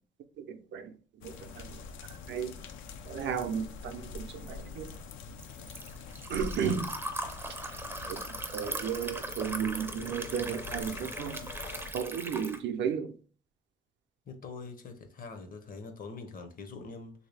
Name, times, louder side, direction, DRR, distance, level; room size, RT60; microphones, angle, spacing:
voice 1, 0.4-0.9 1.2-1.8 2.3-2.6 3.0-4.9 6.3-6.9 7.6-7.8 8.1-8.2 8.5-11.5 11.9-13.2, right 7 dB, 65° right, 0.5 m, -34 dB
sound 1, 1.2-11.9, left 5 dB, 85° left, 0.4 m, -45 dB
Liquid, 4.3-12.6, right 2 dB, 10° right, 0.4 m, -39 dB
voice 2, 14.3-17.1, left 4 dB, 45° left, 0.7 m, -44 dB
3.1 x 2.7 x 3.2 m
cardioid pair, 90°, 20 cm